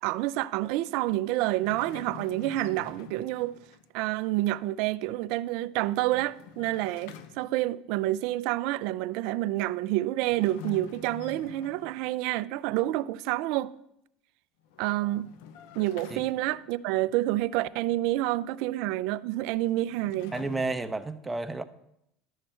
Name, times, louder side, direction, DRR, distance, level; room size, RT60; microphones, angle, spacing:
voice 1, 0.0-3.6 3.9-13.7 14.8-15.3 15.8-20.3, right 16 dB, 70° right, 0.4 m, -28 dB
sound 1, 1.6-3.9 5.7-7.7 10.2-12.2 14.6-16.8 19.7-20.8, left 7 dB, 75° left, 0.6 m, -47 dB
voice 2, 20.3-21.6, right 3 dB, 10° right, 0.7 m, -31 dB
11.5 x 6.6 x 4.4 m
supercardioid pair, 100°, 0 cm